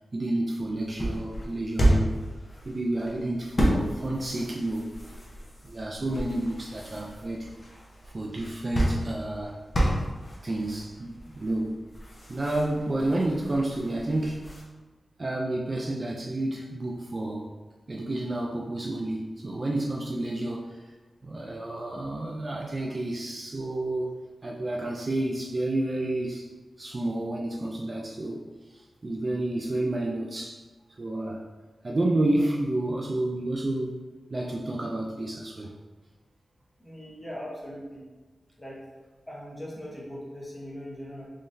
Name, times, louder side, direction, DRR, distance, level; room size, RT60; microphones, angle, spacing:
voice 1, 0.1-2.1 2.7-4.9 5.6-7.5 8.1-9.6 10.4-11.8 12.3-14.5 15.2-17.5 17.9-20.9 21.2-24.1 24.4-26.5 26.8-28.4 28.7-30.6 31.0-31.5 31.8-33.9 34.3-35.7, right 1 dB, 40° right, -1 dB, 0.3 m, -30 dB
sound 1, 0.6-14.6, right 1 dB, 35° left, 0.8 m, -31 dB
voice 2, 36.8-38.0 38.6-38.8 39.3-41.3, equal, 10° left, -5 dB, 1.1 m, -40 dB
3.7 x 3.2 x 2.6 m, 1.3 s
wide cardioid pair, 95°, 0 cm